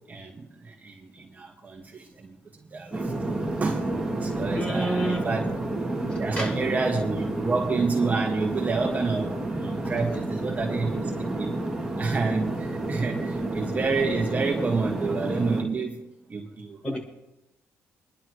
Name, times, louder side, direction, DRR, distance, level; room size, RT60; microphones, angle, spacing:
voice 1, 0.1-2.4 2.7-5.4 6.2-11.5 12.0-17.0, right 4 dB, 30° right, 1.8 m, -29 dB
sound 1, 2.9-15.6, right 2 dB, 10° right, 2.7 m, -30 dB
voice 2, 4.5-5.2 6.1-6.5 16.8-17.0, right 1 dB, 25° left, 6.2 m, -29 dB
26.0 x 11.0 x 3.2 m
cardioid pair, 105°, 5 cm